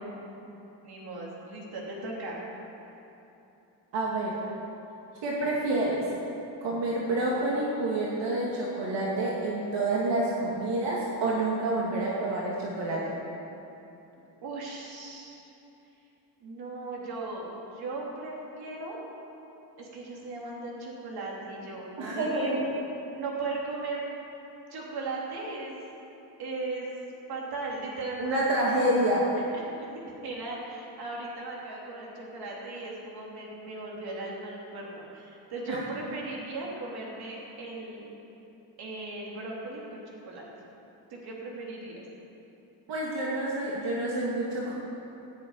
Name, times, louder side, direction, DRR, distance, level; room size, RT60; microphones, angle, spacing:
voice 1, 0.5-2.4 14.4-15.4 16.4-19.0 19.8-22.5 23.1-24.0 24.7-25.8 26.4-26.9 27.3-28.6 29.5-29.9 30.2-38.1 38.8-40.5 41.1-42.0, right 2 dB, 60° right, -3 dB, 3.3 m, -37 dB
voice 2, 3.9-4.4 5.2-6.0 6.6-13.0 22.0-22.6 28.2-29.3 35.7-35.8 42.9-44.7, right 2 dB, 75° right, -5 dB, 2.6 m, -28 dB
16.5 x 7.8 x 9.2 m, 3.0 s
cardioid pair, 170°, 43 cm